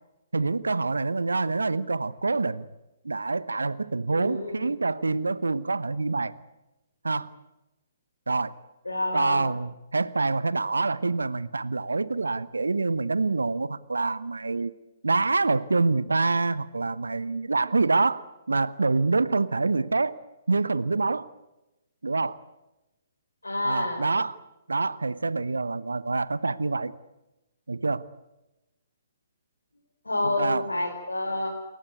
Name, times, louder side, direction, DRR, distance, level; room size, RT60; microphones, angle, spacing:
voice 1, 0.3-2.6 3.0-6.3 7.0-7.3 8.3-8.5 9.1-14.7 15.0-20.1 20.5-21.3 22.0-22.4 23.6-24.4 24.7-26.9 27.7-28.0 30.2-30.7, right 3 dB, 75° right, 17 dB, 1.0 m, -26 dB
voice 2, 4.1-4.7 8.8-9.5 23.4-24.0 30.0-31.5, left 2 dB, 80° left, 0 dB, 5.1 m, -29 dB
28.5 x 15.0 x 9.7 m, 0.99 s
figure-of-eight pair, 125°, 0 cm